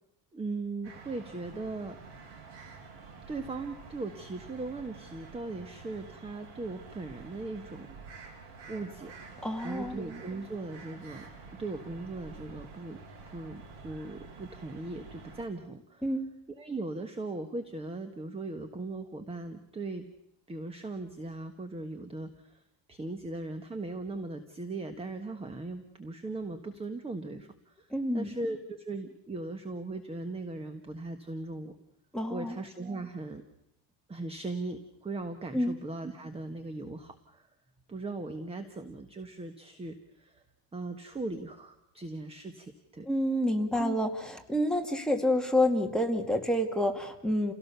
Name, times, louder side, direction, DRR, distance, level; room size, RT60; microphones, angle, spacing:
voice 1, 0.3-2.0 3.3-8.0 8.7-9.1 9.6-11.3 11.6-13.0 13.3-16.1 16.5-20.1 20.5-22.6 22.9-27.9 28.1-31.7 32.3-33.4 34.1-37.5 37.9-40.4 40.7-43.1 43.8-44.0, right 2 dB, 15° right, 8 dB, 1.4 m, -39 dB
sound 1, 0.8-15.5, right 4 dB, 80° right, 6.4 m, -49 dB
voice 2, 9.4-10.0 16.0-16.3 27.9-28.4 32.1-32.6 35.5-35.8 43.1-47.5, left 1 dB, ahead, 5 dB, 2.1 m, -28 dB
29.5 x 17.5 x 6.9 m, 0.82 s
cardioid pair, 150°, 40 cm